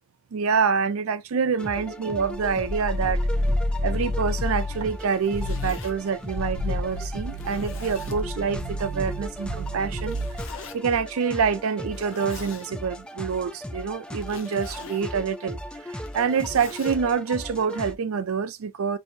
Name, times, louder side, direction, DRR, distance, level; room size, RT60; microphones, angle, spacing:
voice 1, 0.3-3.2 3.8-10.2 10.7-19.0, right 6 dB, 85° right, 0.4 m, -26 dB
sound 1, 1.6-17.9, left 1 dB, 5° left, 0.4 m, -37 dB
sound 2, 2.4-5.0 5.3-5.8 6.2-10.5, left 1 dB, 50° right, 0.9 m, -29 dB
Zipper (clothing), 5.0-5.9 6.6-6.7 7.3-8.2 10.0-10.8 11.8-12.7 14.2-15.1 15.9-17.0, left 5 dB, 65° left, 0.7 m, -44 dB
2.7 x 2.7 x 4.3 m
head